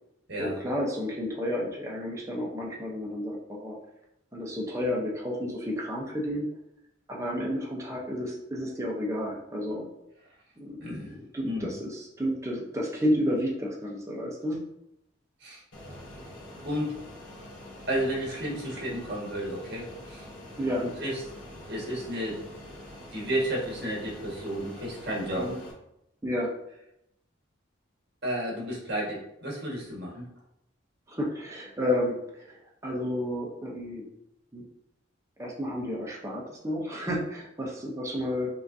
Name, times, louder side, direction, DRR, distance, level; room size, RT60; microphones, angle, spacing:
voice 1, 0.4-3.7 4.3-6.5 7.1-9.9 10.6-14.6 20.6-20.8 25.4-25.6 26.2-26.5 31.1-32.6 32.8-34.0 34.5-34.6 35.4-38.5, equal, 15° right, -3 dB, 0.7 m, -31 dB
voice 2, 10.8-11.1 11.4-11.7 15.4-15.6 16.6-17.0 17.9-20.3 20.8-21.2 21.7-22.4 23.1-25.5 28.2-30.3, equal, 55° right, -3 dB, 1.5 m, -32 dB
Fixed-wing aircraft airplane, 15.7-25.7, left 1 dB, 80° left, 1.0 m, -45 dB
5.5 x 2.6 x 2.6 m, 0.82 s
head